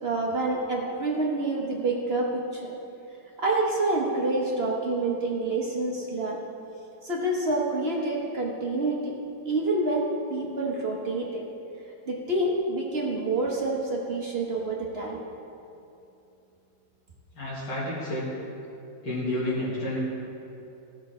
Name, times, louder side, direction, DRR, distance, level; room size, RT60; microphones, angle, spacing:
voice 1, 0.0-2.7 3.4-6.4 7.0-9.2 9.4-11.4 12.1-15.2, right 2 dB, 40° right, -1 dB, 1.0 m, -27 dB
voice 2, 17.3-18.3 19.0-20.0, left 1 dB, 80° left, -8 dB, 2.5 m, -30 dB
15.0 x 6.1 x 4.3 m, 2.8 s
omnidirectional pair, 2.0 m